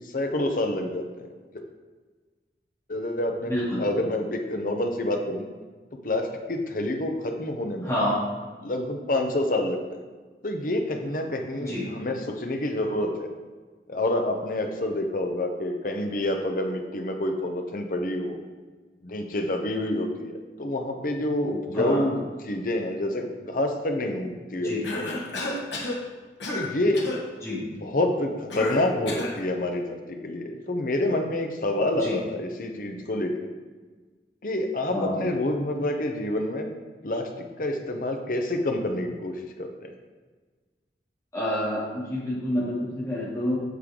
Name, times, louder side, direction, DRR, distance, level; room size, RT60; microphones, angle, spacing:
voice 1, 0.1-1.3 1.5-1.6 2.9-3.5 3.8-5.5 6.0-7.9 8.6-9.8 10.4-13.3 13.9-18.4 19.0-25.5 26.5-27.1 27.7-33.5 34.4-36.7 37.0-37.3 37.6-39.7, left 1 dB, 50° left, 4 dB, 0.9 m, -28 dB
voice 2, 3.5-3.8 7.8-8.2 11.6-11.9 21.7-22.0 24.6-24.8 27.4-27.6 32.0-32.2 34.9-35.3 41.3-43.6, left 1 dB, 15° left, -8 dB, 2.6 m, -28 dB
Cough, 24.8-26.0 26.4-26.7 26.9-27.2 28.5-29.4, left 2 dB, 85° left, 1.5 m, -31 dB
8.2 x 6.6 x 3.8 m, 1.4 s
head